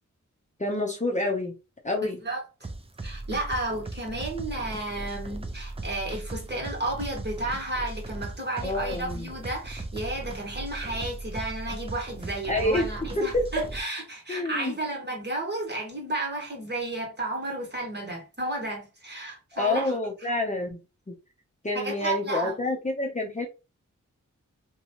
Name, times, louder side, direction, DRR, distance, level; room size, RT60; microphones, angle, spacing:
voice 1, 0.6-1.5 1.8-2.2 8.6-9.3 12.5-12.9 13.2-13.7 14.3-14.8 19.5-20.8 21.1-21.2 21.6-23.5, left 2 dB, 25° left, 0.7 m, -28 dB
sound 1, 2.6-13.8, right 2 dB, 20° right, 0.5 m, -37 dB
voice 2, 3.0-20.0 20.2-20.3 21.8-22.6, right 2 dB, 35° right, 1.5 m, -32 dB
2.7 x 2.3 x 2.9 m
cardioid pair, 50°, 31 cm